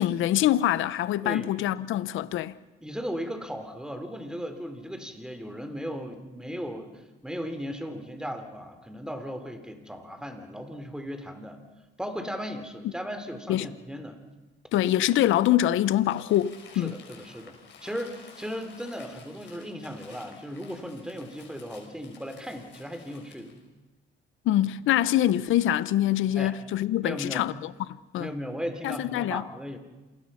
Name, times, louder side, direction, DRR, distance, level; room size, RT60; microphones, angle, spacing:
voice 1, 0.0-2.6 13.5-13.7 14.7-16.9 24.4-27.7 28.1-28.3 28.8-29.4, left 12 dB, 85° left, 0.8 m, -24 dB
voice 2, 2.8-11.6 12.0-14.2 16.7-23.5 26.3-26.5 27.0-27.5 28.2-29.8, equal, 5° right, 3.5 m, -37 dB
Crumpling crinkling, 16.0-23.6, left 6 dB, 65° left, 6.2 m, -52 dB
27.5 x 20.0 x 5.7 m
cardioid pair, 90°, 20 cm